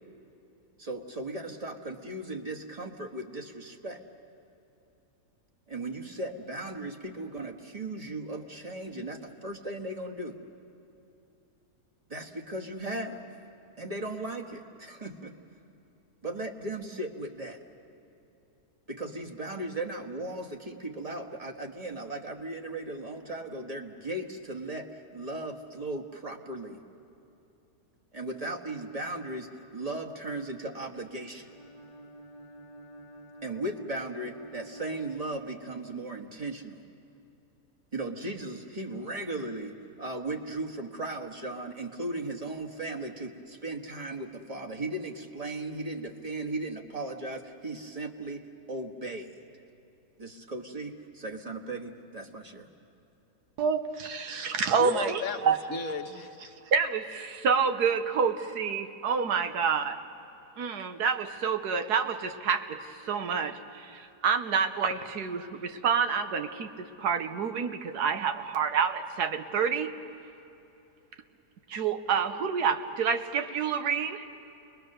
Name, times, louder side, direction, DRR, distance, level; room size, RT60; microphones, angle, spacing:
voice 1, 0.8-4.0 5.7-10.4 12.1-13.2 13.8-15.3 16.2-17.6 18.9-26.8 28.1-31.5 33.4-36.8 37.9-49.4 50.2-52.7, right 2 dB, 25° right, 1 dB, 1.4 m, -37 dB
Bowed string instrument, 31.4-35.9, right 1 dB, 25° left, 1.1 m, -49 dB
voice 2, 53.6-55.6 56.7-60.0 60.6-69.9 71.7-74.3, right 6 dB, 85° right, 7 dB, 1.6 m, -28 dB
voice 3, 54.8-56.5, left 5 dB, 65° left, 4 dB, 1.4 m, -35 dB
29.5 x 21.5 x 6.7 m, 2.9 s
omnidirectional pair, 1.7 m